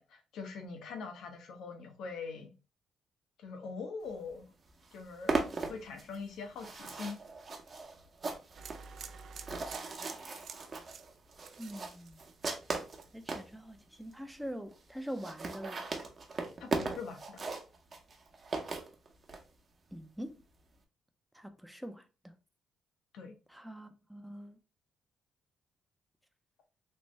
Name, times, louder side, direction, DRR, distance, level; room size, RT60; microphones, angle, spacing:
voice 1, 0.0-2.5 3.4-4.5 4.9-7.2 16.6-17.4 23.1-23.3, left 4 dB, 80° left, 0.9 m, -43 dB
sound 1, 4.3-4.4 4.7-13.5 14.1-14.2 14.4-14.5 14.7-14.8 15.0-19.4, right 3 dB, 40° right, 0.8 m, -38 dB
sound 2, 8.5-12.6 12.9-13.4, right 5 dB, 60° right, 0.4 m, -49 dB
voice 2, 11.6-12.2 13.1-15.8 19.9-20.4 21.3-22.3 23.5-24.6, equal, 5° right, 0.5 m, -44 dB
3.3 x 2.5 x 3.1 m
cardioid pair, 90°, 0 cm